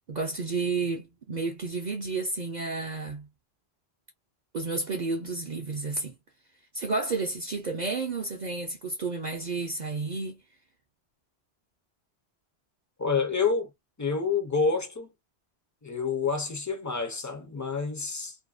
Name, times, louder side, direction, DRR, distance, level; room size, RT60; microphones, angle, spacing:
voice 1, 0.1-3.3 4.5-6.2 6.7-10.4, right 3 dB, 55° right, 0.6 m, -31 dB
voice 2, 13.0-13.7 14.0-15.1 15.8-18.4, left 5 dB, 25° left, 0.4 m, -28 dB
2.6 x 2.1 x 2.3 m
omnidirectional pair, 1.1 m